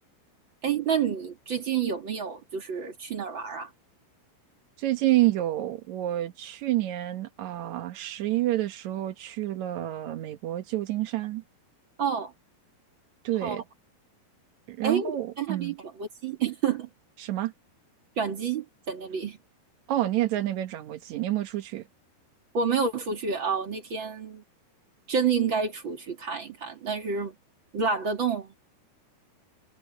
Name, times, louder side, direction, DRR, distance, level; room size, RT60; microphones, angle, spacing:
voice 1, 0.6-3.7 12.0-12.3 13.4-13.6 14.8-16.9 18.2-19.4 22.5-24.4 25.1-27.4 27.7-28.6, right 6 dB, 40° right, 1.9 m, -29 dB
voice 2, 4.8-11.4 13.2-13.6 14.7-15.7 17.2-17.5 19.9-21.9, right 15 dB, 80° right, 1.6 m, -28 dB
omnidirectional pair, 4.9 m